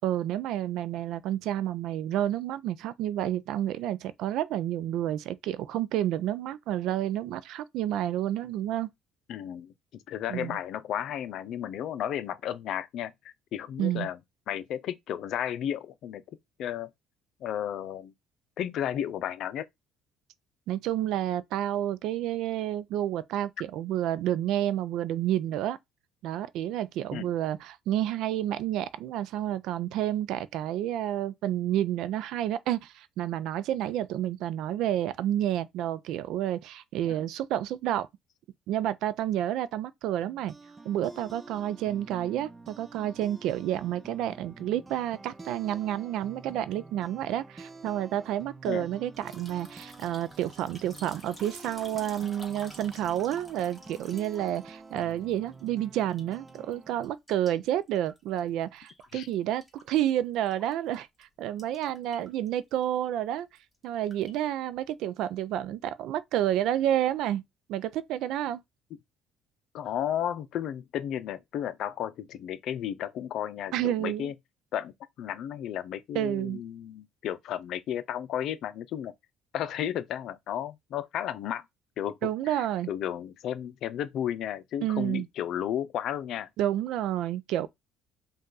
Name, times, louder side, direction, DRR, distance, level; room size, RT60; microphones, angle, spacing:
voice 1, 0.0-8.9 10.3-10.6 13.8-14.1 20.7-25.8 26.2-38.1 38.7-40.5 40.9-63.5 63.8-67.4 67.7-68.6 73.7-74.3 76.1-76.6 82.2-82.9 84.8-85.3 86.6-87.7, right 12 dB, 75° right, 0.4 m, -30 dB
voice 2, 9.3-14.2 14.5-16.2 16.6-16.9 17.4-18.1 18.6-19.7 27.1-27.3 37.0-37.2 48.7-48.9 59.1-59.3 69.7-74.3 74.7-79.1 79.5-81.6 82.0-86.5, left 10 dB, 65° left, 0.5 m, -33 dB
sound 1, 40.2-57.1, right 3 dB, 20° right, 0.6 m, -48 dB
sound 2, 49.1-55.7 56.0-56.7 57.0-59.3 59.6-61.0 61.2-61.3 61.6-62.5 62.8-63.0 63.4-64.4, equal, ahead, 1.6 m, -51 dB
5.2 x 2.4 x 3.9 m
cardioid pair, 110°, 0 cm